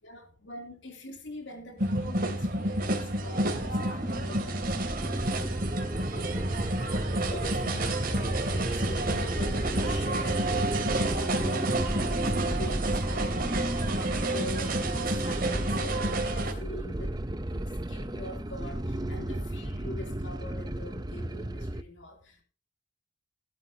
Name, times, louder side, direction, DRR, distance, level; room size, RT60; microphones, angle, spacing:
voice 1, 0.0-5.8 6.1-10.7 11.0-17.2 17.5-17.6 17.9-22.4, left 1 dB, 70° left, 3.3 m, -44 dB
sound 1, 1.8-16.5, right 2 dB, 50° right, 3.1 m, -30 dB
sound 2, 3.2-21.8, right 1 dB, 20° right, 0.8 m, -33 dB
17.0 x 12.0 x 2.9 m
head